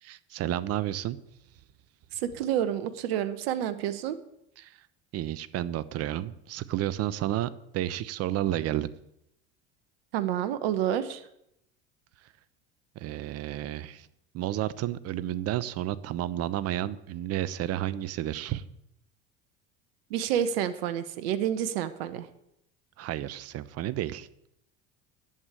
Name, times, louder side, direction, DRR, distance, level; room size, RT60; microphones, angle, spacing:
voice 1, 0.0-1.2 4.6-4.7 5.1-8.9 13.0-14.1 14.3-18.6 23.0-24.3, right 13 dB, 50° right, 17 dB, 1.0 m, -31 dB
voice 2, 2.1-4.2 10.1-11.2 20.1-22.3, right 10 dB, 75° right, 12 dB, 1.2 m, -29 dB
11.0 x 8.3 x 9.0 m, 0.79 s
hypercardioid pair, 80°, 31 cm